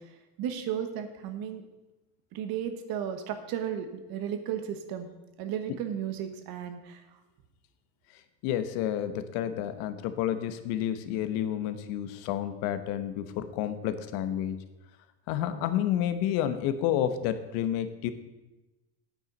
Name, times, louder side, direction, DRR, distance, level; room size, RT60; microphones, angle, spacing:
voice 1, 0.4-1.6 2.3-5.1 5.4-7.0, right 9 dB, 60° right, 8 dB, 1.4 m, -34 dB
voice 2, 8.4-14.6 15.3-18.1, left 10 dB, 75° left, 11 dB, 1.1 m, -30 dB
9.1 x 8.7 x 5.3 m, 1.1 s
cardioid pair, 150°, 41 cm